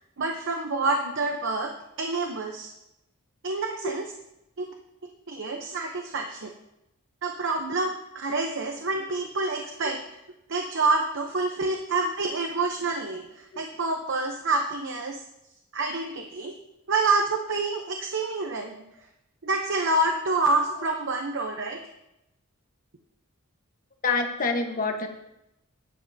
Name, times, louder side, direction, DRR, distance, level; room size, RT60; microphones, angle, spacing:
voice 1, 0.2-1.7 2.0-2.7 3.4-4.1 4.6-4.7 5.3-6.5 7.2-10.0 10.5-15.2 15.7-16.5 16.9-18.7 19.4-21.8, right 3 dB, 55° right, 3 dB, 0.8 m, -27 dB
voice 2, 24.0-25.1, left 4 dB, 40° left, 4 dB, 1.2 m, -26 dB
13.0 x 10.5 x 2.7 m, 0.89 s
head